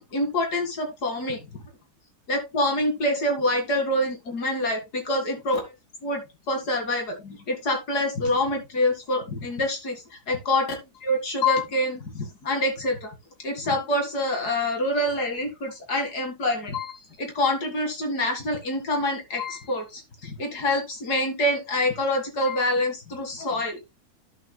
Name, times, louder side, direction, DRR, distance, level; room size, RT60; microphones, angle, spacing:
voice 1, 0.0-1.6 2.3-5.7 6.0-10.7 11.0-13.1 13.4-23.8, left 1 dB, 75° left, 4 dB, 2.6 m, -26 dB
12.0 x 7.9 x 2.2 m, 0.23 s
omnidirectional pair, 1.7 m